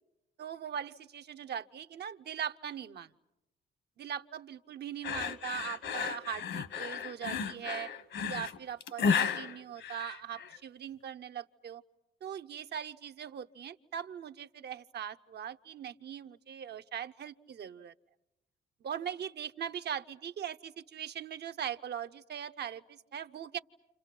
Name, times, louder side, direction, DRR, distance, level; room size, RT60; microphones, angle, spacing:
voice 1, 0.4-3.1 4.0-7.9 8.2-11.8 12.2-17.9 18.8-23.6, right 9 dB, 55° right, 9 dB, 0.9 m, -40 dB
sound 1, 5.0-10.6, left 6 dB, 70° left, 1.5 m, -33 dB
29.5 x 28.5 x 6.0 m, 0.90 s
cardioid pair, 90°, 20 cm